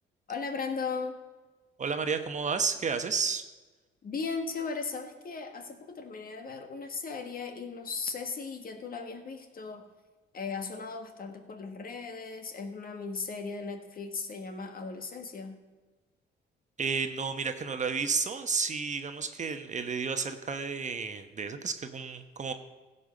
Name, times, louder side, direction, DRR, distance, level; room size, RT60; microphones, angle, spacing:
voice 1, 0.3-1.2 4.0-9.8 10.3-15.6, left 4 dB, 45° left, 6 dB, 1.7 m, -37 dB
voice 2, 1.8-3.4 16.8-22.5, right 5 dB, 35° right, 8 dB, 1.0 m, -31 dB
15.5 x 5.6 x 6.6 m, 1.3 s
cardioid pair, 90°, 20 cm